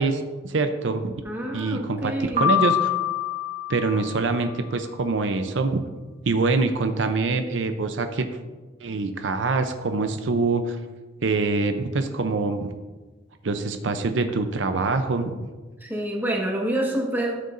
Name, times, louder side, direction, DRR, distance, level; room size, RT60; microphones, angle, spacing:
voice 1, 0.0-1.2 1.5-2.9 3.7-5.8 6.2-8.2 8.8-10.8 11.2-12.7 13.4-15.5, right 3 dB, 80° right, 7 dB, 0.6 m, -25 dB
voice 2, 1.2-2.6 15.8-17.4, right 1 dB, 10° right, -2 dB, 1.4 m, -27 dB
Piano, 2.4-4.5, left 7 dB, 35° right, 1.5 m, -25 dB
13.0 x 6.6 x 2.6 m, 1.2 s
head